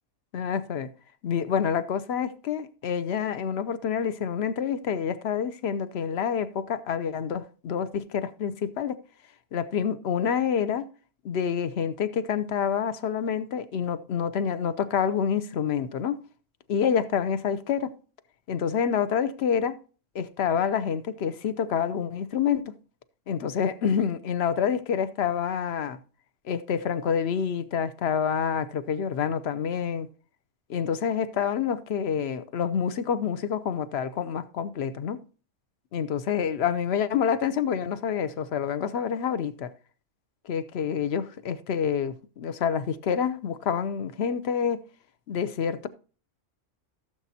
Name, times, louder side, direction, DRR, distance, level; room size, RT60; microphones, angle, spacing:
voice 1, 0.3-0.9 1.2-9.0 9.5-10.9 11.2-16.2 16.7-17.9 18.5-19.8 20.1-22.7 23.3-26.0 26.4-30.1 30.7-35.2 35.9-39.7 40.4-44.8 45.3-45.9, left 7 dB, 60° left, 0.9 m, -27 dB
16.5 x 7.4 x 2.7 m
omnidirectional pair, 1.3 m